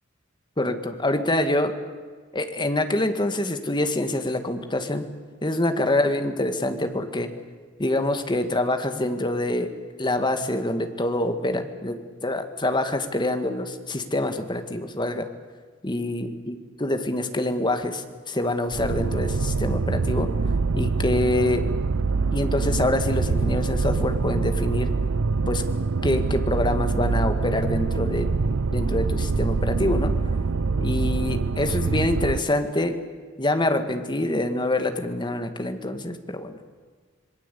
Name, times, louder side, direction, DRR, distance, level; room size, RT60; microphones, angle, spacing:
voice 1, 0.6-1.7 2.3-5.1 5.4-7.3 7.8-9.7 10.0-15.3 15.8-20.3 20.7-21.7 22.3-24.9 25.5-25.6 26.0-28.3 28.7-30.1 30.8-33.0 33.4-36.6, left 1 dB, 20° left, 7 dB, 1.9 m, -25 dB
Viral Terra Sweep, 18.7-32.4, right 4 dB, 75° right, 0.7 m, -24 dB
26.5 x 22.0 x 8.4 m, 1.5 s
head